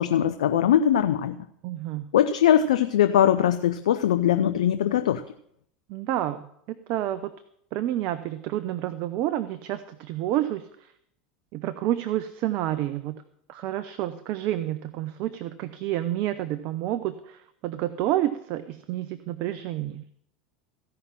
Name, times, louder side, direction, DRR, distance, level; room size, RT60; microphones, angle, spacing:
voice 1, 0.0-1.4 2.1-5.2, left 10 dB, 80° left, 9 dB, 0.6 m, -21 dB
voice 2, 1.6-2.1 5.9-7.3 7.7-10.7 11.5-13.2 13.5-20.0, right 13 dB, 55° right, 12 dB, 0.7 m, -29 dB
15.5 x 5.8 x 7.4 m, 0.70 s
hypercardioid pair, 90°, 4 cm